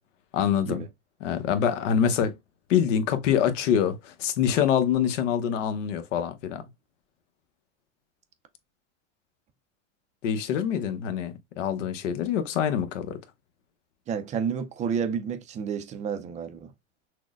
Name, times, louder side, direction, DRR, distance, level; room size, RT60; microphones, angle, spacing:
voice 1, 0.3-0.8 1.2-2.3 2.7-6.6 10.2-13.2, left 8 dB, 80° left, 0.9 m, -25 dB
voice 2, 14.1-16.7, right 7 dB, 20° right, 0.4 m, -30 dB
6.0 x 2.1 x 2.4 m
supercardioid pair, 130°, 37 cm